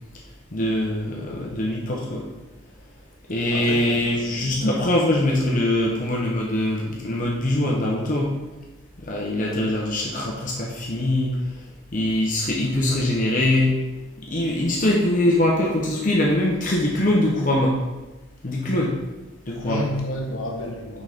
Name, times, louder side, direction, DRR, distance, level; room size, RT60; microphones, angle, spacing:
voice 1, 0.5-2.3 3.3-8.3 9.0-11.3 11.9-13.8 14.3-17.8 18.4-18.9 19.5-19.9, left 1 dB, 40° left, -3 dB, 0.8 m, -22 dB
voice 2, 3.5-4.9 19.6-21.0, left 1 dB, 90° left, 2 dB, 1.1 m, -31 dB
6.0 x 5.3 x 3.5 m, 1.1 s
head